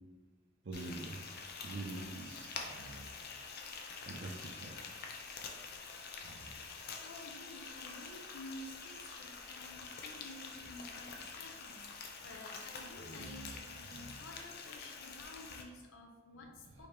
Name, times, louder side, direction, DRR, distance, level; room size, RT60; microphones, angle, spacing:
voice 1, 0.6-1.2 1.6-3.1 4.1-4.8 6.2-6.5 9.7-9.8 13.0-13.5 13.9-14.2 16.7-16.8, right 2 dB, 60° right, 1 dB, 0.5 m, -46 dB
Frying (food), 0.7-15.6, left 5 dB, 50° left, 0.5 m, -47 dB
voice 2, 6.6-16.9, left 1 dB, 90° left, 3 dB, 0.7 m, -52 dB
5.0 x 2.9 x 3.3 m, 1.3 s
head